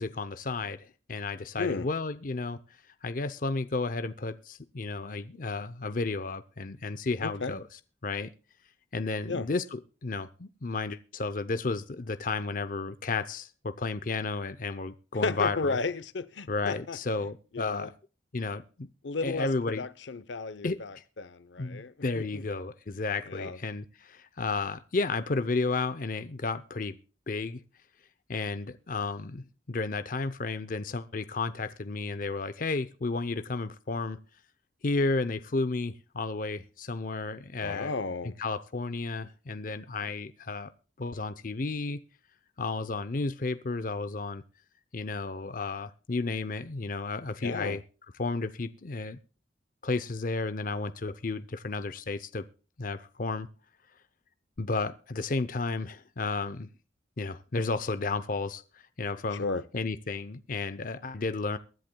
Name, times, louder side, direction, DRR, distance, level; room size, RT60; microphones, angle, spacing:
voice 1, 0.0-2.6 3.0-7.6 8.0-8.3 8.9-15.8 16.5-17.9 18.3-18.9 19.2-19.8 20.6-20.8 21.6-27.0 27.3-27.6 28.3-34.2 34.8-37.9 38.4-40.7 41.0-42.0 42.6-44.4 44.9-47.8 48.2-49.2 49.8-52.4 52.8-53.5 54.6-56.7 57.2-59.4 59.7-61.6, left 3 dB, 45° left, 0.6 m, -32 dB
voice 2, 1.6-1.9 7.2-7.5 9.3-9.5 15.2-17.0 17.5-17.9 19.0-22.4 23.3-23.6 37.6-38.4 47.4-47.8 59.4-59.6, left 3 dB, 80° left, 0.8 m, -33 dB
23.0 x 10.5 x 2.2 m
head